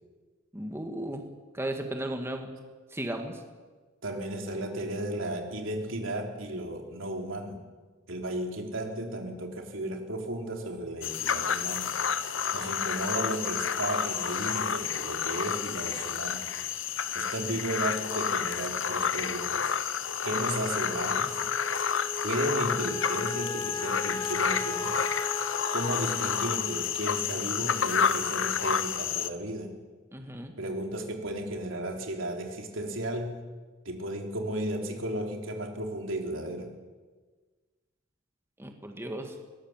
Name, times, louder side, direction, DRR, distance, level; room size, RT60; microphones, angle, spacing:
voice 1, 0.5-1.3 1.5-2.5 2.9-3.4 30.1-30.5 38.6-39.3, right 1 dB, 15° right, 4 dB, 1.9 m, -35 dB
voice 2, 4.0-7.6 8.1-11.9 12.5-16.5 17.1-19.8 20.2-21.4 22.2-25.1 25.7-29.7 30.6-33.4 33.9-36.7, right 1 dB, 85° right, 3 dB, 3.4 m, -34 dB
sound 1, 11.0-29.3, left 7 dB, 75° left, 1.1 m, -30 dB
Wind instrument woodwind instrument, 20.3-28.8, left 3 dB, 20° left, 1.2 m, -38 dB
22.0 x 18.5 x 7.5 m, 1.4 s
head